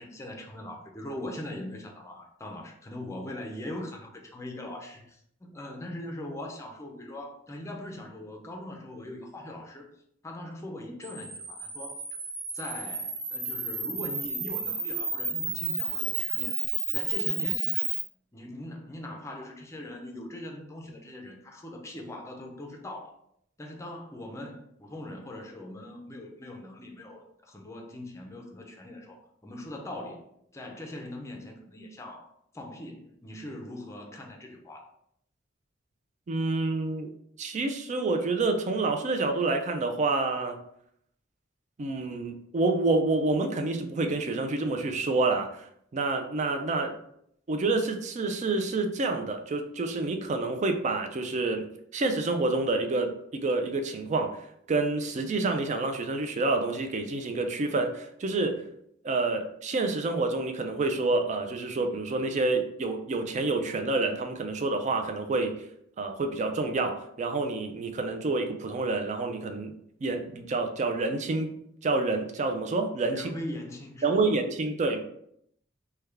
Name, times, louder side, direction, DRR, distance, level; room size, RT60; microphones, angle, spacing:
voice 1, 0.0-9.9 10.2-12.0 12.5-16.6 16.9-17.8 18.3-23.2 23.6-30.2 30.5-34.9 73.1-74.4 74.8-75.0, left 1 dB, 15° left, 0.5 m, -41 dB
Camera, 11.0-18.0, right 3 dB, 55° right, 1.0 m, -32 dB
voice 2, 36.3-37.1 37.4-40.6 41.8-45.6 45.9-47.0 47.5-51.7 51.9-54.4 54.7-58.6 59.0-65.6 66.0-69.7 70.0-71.6 71.8-73.3 74.0-75.0, right 3 dB, 40° right, 0.4 m, -28 dB
3.3 x 2.2 x 3.3 m
head